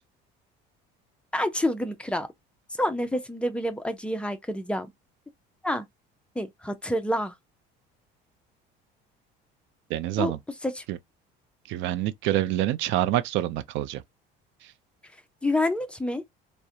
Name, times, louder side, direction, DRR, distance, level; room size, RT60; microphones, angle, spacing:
voice 1, 1.3-2.3 2.8-4.9 5.6-5.9 6.4-7.3 10.2-10.3 10.6-10.8 15.4-16.2, left 1 dB, 5° left, 0.4 m, -28 dB
voice 2, 9.9-10.4 10.9-11.0 11.7-14.0 14.6-14.7, right 13 dB, 70° right, 0.4 m, -27 dB
2.3 x 2.1 x 2.7 m
cardioid pair, 120°, 20 cm